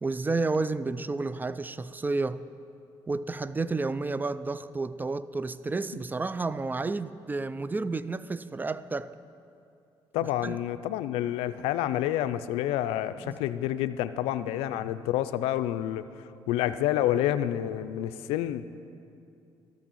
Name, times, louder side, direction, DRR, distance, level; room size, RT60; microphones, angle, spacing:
voice 1, 0.0-2.4 3.1-9.1 10.4-10.6 13.2-13.4, right 3 dB, 20° right, 0.3 m, -31 dB
voice 2, 10.1-16.0 16.5-18.8, left 12 dB, 90° left, 0.4 m, -28 dB
13.5 x 6.0 x 6.9 m
supercardioid pair, 80°, 10 cm